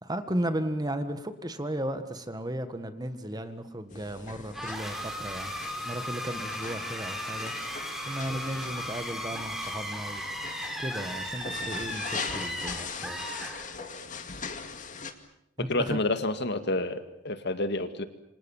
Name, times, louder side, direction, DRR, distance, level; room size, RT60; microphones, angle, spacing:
voice 1, 0.0-5.5 5.8-7.5 8.1-10.2 10.8-13.2 15.6-16.0, right 1 dB, 20° right, 10 dB, 1.7 m, -35 dB
sound 1, 3.9-15.1, left 5 dB, 40° left, 2.3 m, -41 dB
sound 2, 4.5-14.1, equal, ahead, 4.9 m, -36 dB
voice 2, 15.7-18.0, left 2 dB, 60° left, 9 dB, 2.1 m, -29 dB
28.5 x 26.0 x 7.3 m, 0.77 s
head